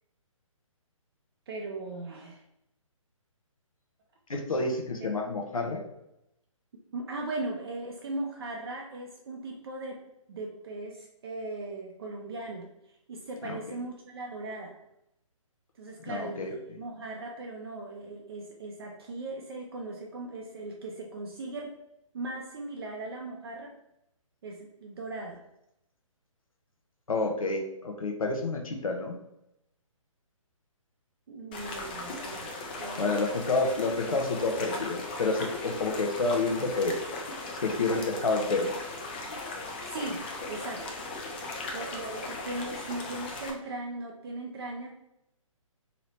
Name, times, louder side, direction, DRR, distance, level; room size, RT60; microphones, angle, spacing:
voice 1, 1.5-2.4 5.0-5.1 6.9-10.0 10.3-14.7 15.8-21.8 22.1-23.7 24.4-25.4 31.3-32.5 32.8-33.2 39.8-40.8 41.7-44.9, right 2 dB, 45° right, 0 dB, 0.5 m, -38 dB
voice 2, 4.3-5.8 13.4-13.8 16.1-16.5 27.1-29.1 33.0-37.0 37.5-38.7, left 3 dB, 85° left, 2 dB, 0.7 m, -29 dB
sound 1, 31.5-43.5, left 2 dB, 20° left, 0.3 m, -38 dB
2.9 x 2.7 x 3.2 m, 0.82 s
figure-of-eight pair, 140°, 17 cm